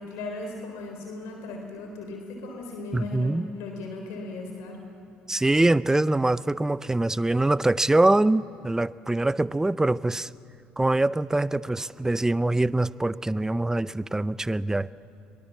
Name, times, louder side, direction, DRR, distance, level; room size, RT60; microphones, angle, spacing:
voice 1, 0.0-4.8, left 2 dB, 65° left, 3.8 m, -37 dB
voice 2, 2.9-3.5 5.3-10.3 10.8-14.9, right 2 dB, 10° right, 0.6 m, -24 dB
23.0 x 22.5 x 7.5 m
hypercardioid pair, 60°, 5 cm